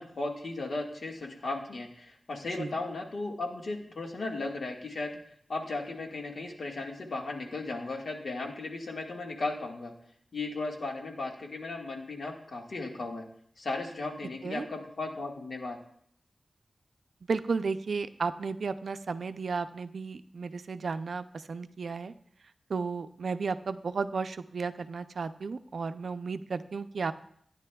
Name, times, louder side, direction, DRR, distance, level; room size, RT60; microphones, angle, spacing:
voice 1, 0.0-5.1 5.5-9.9 10.3-13.2 13.6-15.8, left 2 dB, 75° left, 1 dB, 1.6 m, -36 dB
voice 2, 17.3-22.1 22.7-27.1, right 4 dB, 80° right, 11 dB, 0.4 m, -33 dB
16.5 x 9.8 x 2.3 m, 0.66 s
wide cardioid pair, 85°, 0 cm